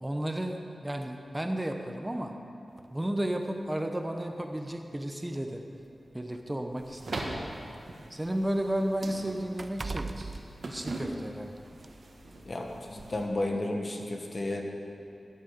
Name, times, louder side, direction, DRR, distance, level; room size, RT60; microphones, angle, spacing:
voice 1, 0.0-2.3 2.9-5.6 6.1-7.3 8.1-10.1 10.7-11.5, right 1 dB, 15° right, 4 dB, 0.9 m, -33 dB
sound 1, 2.8-3.0 4.0-4.1 4.6-4.7 5.6-7.6 8.0-11.4 11.8-12.0, right 3 dB, 45° right, 0.5 m, -42 dB
sound 2, 6.8-13.3, right 2 dB, 65° right, 1.7 m, -41 dB
voice 2, 12.5-14.6, left 1 dB, 45° left, 2 dB, 1.4 m, -32 dB
12.5 x 8.2 x 6.7 m, 2.8 s
wide cardioid pair, 70°, 0 cm